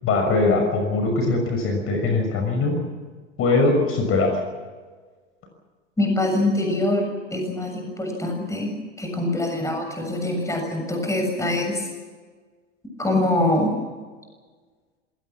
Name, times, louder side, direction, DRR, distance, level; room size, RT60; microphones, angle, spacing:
voice 1, 0.0-2.7 3.4-4.4, left 3 dB, 35° left, 4 dB, 6.2 m, -21 dB
voice 2, 6.0-7.0 7.3-11.9 13.0-13.7, left 1 dB, 10° left, 3 dB, 7.2 m, -24 dB
27.0 x 18.0 x 7.4 m, 1.4 s
figure-of-eight pair, 90°, 37 cm